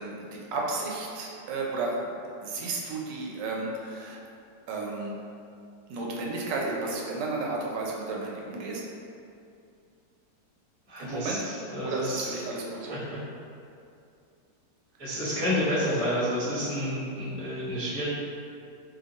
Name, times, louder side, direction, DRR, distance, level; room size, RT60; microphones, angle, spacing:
voice 1, 0.0-2.2 2.4-4.2 4.7-5.2 5.9-8.8 11.0-11.5 11.8-13.0, right 3 dB, 85° right, -2 dB, 1.2 m, -33 dB
voice 2, 10.9-12.4 12.9-13.2 15.0-18.1, equal, 20° right, -10 dB, 0.9 m, -30 dB
2.8 x 2.6 x 3.9 m, 2.5 s
omnidirectional pair, 1.9 m